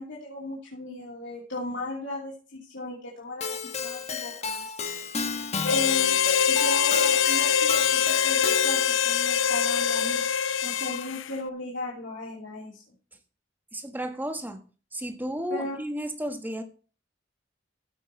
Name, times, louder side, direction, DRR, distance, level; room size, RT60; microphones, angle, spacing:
voice 1, 0.0-4.7 5.6-6.2 6.5-10.2 10.6-12.8 15.5-15.8, left 2 dB, 70° left, -5 dB, 2.9 m, -36 dB
Keyboard (musical), 3.4-9.1, left 5 dB, 35° left, 1.1 m, -33 dB
Harmonica, 5.6-11.3, left 7 dB, 90° left, 0.6 m, -23 dB
voice 2, 13.7-14.6 14.9-16.6, equal, 10° right, 6 dB, 1.2 m, -33 dB
14.5 x 6.3 x 4.3 m, 0.37 s
head